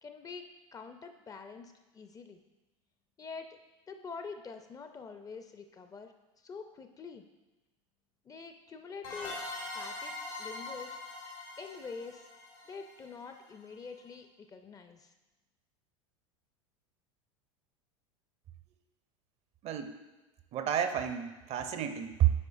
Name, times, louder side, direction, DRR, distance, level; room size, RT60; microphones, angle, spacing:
voice 1, 0.0-2.4 3.2-3.6 3.9-6.1 6.4-7.3 8.3-9.4 9.7-10.1 10.4-11.0 11.6-12.3 12.7-15.1, left 5 dB, 20° left, 7 dB, 0.4 m, -46 dB
sound 1, 9.0-13.5, left 2 dB, 85° left, 2.1 m, -42 dB
voice 2, 19.6-20.0 20.5-22.3, right 10 dB, 40° right, 8 dB, 0.5 m, -30 dB
8.5 x 4.7 x 2.5 m, 1.1 s
hypercardioid pair, 85°, 17 cm